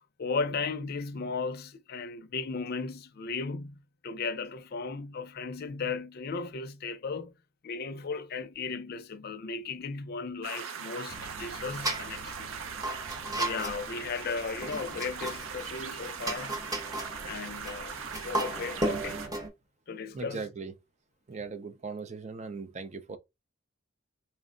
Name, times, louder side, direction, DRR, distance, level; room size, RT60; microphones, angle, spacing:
voice 1, 0.2-7.3 7.6-12.5 13.4-16.6 17.2-19.3 19.9-20.4, left 4 dB, 50° left, 0.5 m, -36 dB
sound 1, 10.4-19.3, right 6 dB, 85° right, 0.5 m, -40 dB
sound 2, 11.1-19.5, right 1 dB, 20° right, 1.0 m, -36 dB
voice 2, 20.1-20.7 21.3-23.2, right 4 dB, 35° right, 0.5 m, -39 dB
4.3 x 2.1 x 3.7 m
head